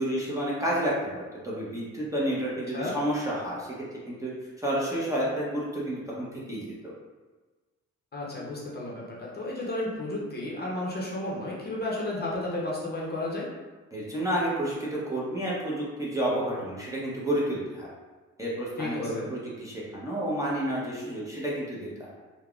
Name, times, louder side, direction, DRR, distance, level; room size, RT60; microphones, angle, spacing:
voice 1, 0.0-3.7 4.1-4.3 4.6-6.9 13.9-17.9 18.4-22.1, right 1 dB, 10° right, -7 dB, 0.7 m, -30 dB
voice 2, 8.1-13.5 18.8-19.3, left 1 dB, 35° left, -4 dB, 0.7 m, -33 dB
3.3 x 2.1 x 2.4 m, 1.3 s
cardioid pair, 90°, 30 cm